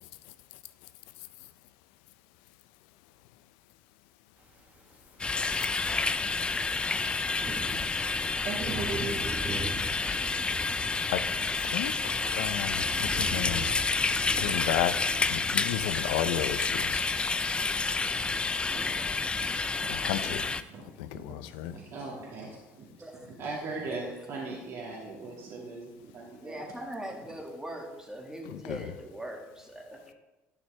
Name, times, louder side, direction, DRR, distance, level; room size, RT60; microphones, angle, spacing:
sound 1, 4.9-5.0 5.5-15.3, right 2 dB, 25° right, 1.3 m, -41 dB
sound 2, 5.2-20.6, left 3 dB, 20° left, 0.4 m, -29 dB
voice 1, 8.4-9.8 15.8-16.1 18.0-19.9 20.2-20.4 20.7-21.2 21.6-26.7, right 3 dB, 55° right, 2.0 m, -40 dB
voice 2, 11.7-13.7 14.4-15.0 15.3-17.1 19.9-20.5 21.0-21.7 28.5-28.9, left 12 dB, 85° left, 0.5 m, -33 dB
voice 3, 26.4-30.0, right 1 dB, 10° right, 1.9 m, -41 dB
11.5 x 6.2 x 3.3 m
supercardioid pair, 95°, 5 cm